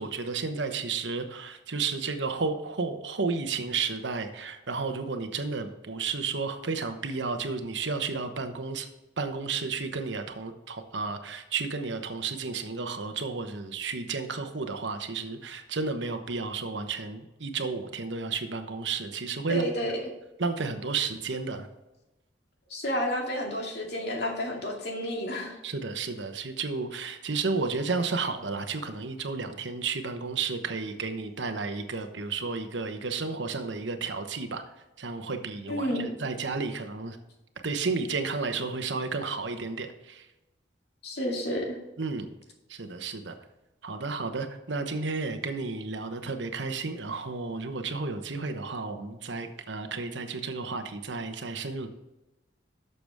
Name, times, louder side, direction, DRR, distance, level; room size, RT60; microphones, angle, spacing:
voice 1, 0.0-8.9 9.2-19.9 20.4-21.7 25.6-34.6 35.0-37.2 37.6-40.3 42.0-42.3 42.7-43.4 43.8-51.9, right 4 dB, 80° right, 7 dB, 1.0 m, -32 dB
voice 2, 19.5-20.1 22.7-25.6 35.7-36.1 41.0-41.8, equal, 60° left, 0 dB, 2.4 m, -31 dB
11.5 x 6.9 x 3.5 m, 1.0 s
head